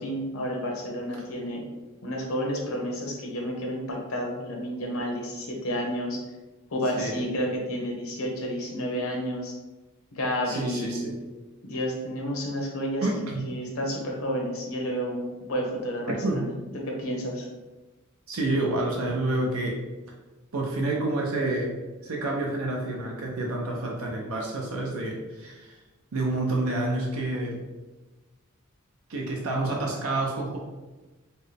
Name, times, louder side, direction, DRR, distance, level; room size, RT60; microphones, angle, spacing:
voice 1, 0.0-1.6 2.0-6.2 6.7-9.5 10.1-11.1 11.6-13.1 13.4-16.5 16.7-17.5, equal, 85° left, 0 dB, 0.9 m, -30 dB
voice 2, 10.5-11.2 13.0-13.5 16.1-16.5 18.3-19.8 20.5-21.7 22.0-25.7 26.1-27.7 29.1-30.6, right 2 dB, 85° right, -1 dB, 0.6 m, -28 dB
4.3 x 2.1 x 3.3 m, 1.2 s
head